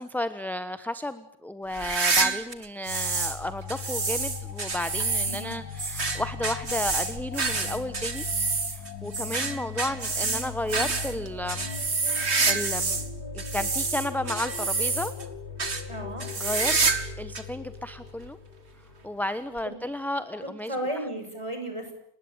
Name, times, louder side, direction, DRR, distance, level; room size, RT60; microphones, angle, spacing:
voice 1, 0.0-8.3 8.7-11.7 12.5-13.0 13.3-15.1 16.4-16.8 17.2-18.4 19.0-20.8, left 1 dB, ahead, 11 dB, 1.0 m, -33 dB
sound 1, 1.7-3.4 3.7-13.1 13.4-15.2 15.6-15.8 16.2-17.1 17.3-17.4 18.2-18.3 19.6-19.7, right 4 dB, 45° right, 2.4 m, -28 dB
sound 2, 2.9-19.2, left 5 dB, 90° left, 2.5 m, -39 dB
voice 2, 5.3-5.6 15.9-16.3 19.6-19.8 20.4-21.9, right 1 dB, 20° right, 5 dB, 6.9 m, -34 dB
29.5 x 20.5 x 9.0 m, 0.70 s
omnidirectional pair, 1.6 m